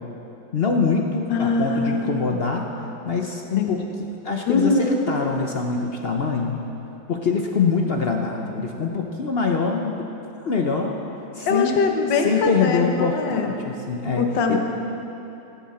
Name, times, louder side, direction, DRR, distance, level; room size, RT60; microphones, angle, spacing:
voice 1, 0.5-2.7 3.0-3.9 4.2-6.6 7.1-9.9 10.4-11.0 11.3-11.8 12.2-14.6, left 5 dB, 55° left, 2 dB, 0.6 m, -24 dB
voice 2, 1.3-2.1 3.6-3.8 4.5-5.1 11.5-13.5 14.2-14.6, left 4 dB, 75° left, 3 dB, 1.7 m, -22 dB
16.5 x 11.5 x 4.2 m, 2.9 s
omnidirectional pair, 2.0 m